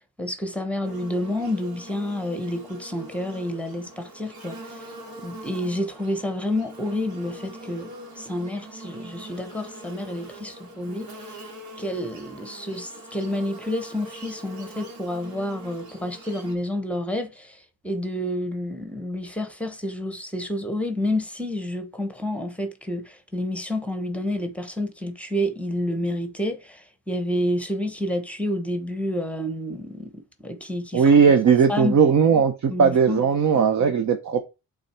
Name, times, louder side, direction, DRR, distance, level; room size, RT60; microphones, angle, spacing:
voice 1, 0.2-4.9 5.2-11.4 11.8-31.1 31.7-31.9 32.7-33.2 33.8-33.9, left 1 dB, 5° left, 1.0 m, -29 dB
Buzz, 0.8-16.5, right 1 dB, 75° right, 2.6 m, -43 dB
voice 2, 30.9-34.4, right 6 dB, 50° right, 0.9 m, -18 dB
8.7 x 3.9 x 4.4 m
cardioid pair, 135°, 37 cm